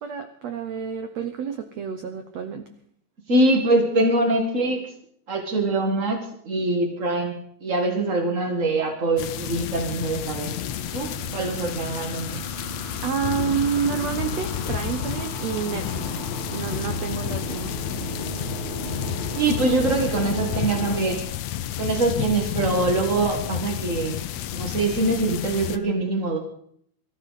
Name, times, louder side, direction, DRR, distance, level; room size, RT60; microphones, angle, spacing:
voice 1, 0.0-2.7 13.0-17.8, right 7 dB, 85° right, 7 dB, 1.4 m, -29 dB
voice 2, 3.3-4.9 5.3-10.5 10.9-12.4 19.3-21.2 21.8-24.2 24.5-26.4, right 2 dB, 55° right, 3 dB, 0.8 m, -23 dB
sound 1, 9.2-25.8, left 11 dB, 90° left, 1.6 m, -31 dB
sound 2, 9.6-21.0, right 1 dB, 25° right, 1.5 m, -35 dB
23.5 x 14.5 x 4.1 m, 0.65 s
omnidirectional pair, 4.4 m